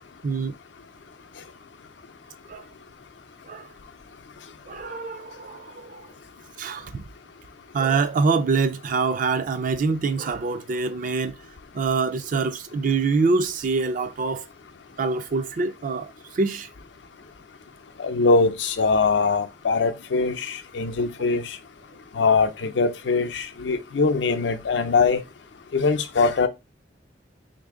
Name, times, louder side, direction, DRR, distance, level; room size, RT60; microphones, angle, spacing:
voice 1, 0.2-0.6 2.5-2.6 3.5-3.7 4.7-6.1 6.6-7.0 7.7-11.4 11.7-14.5 15.0-16.7, right 4 dB, 50° right, 0.4 m, -25 dB
voice 2, 18.0-21.6 22.1-25.2 25.7-26.5, left 4 dB, 90° left, 0.5 m, -22 dB
3.3 x 2.7 x 3.6 m
head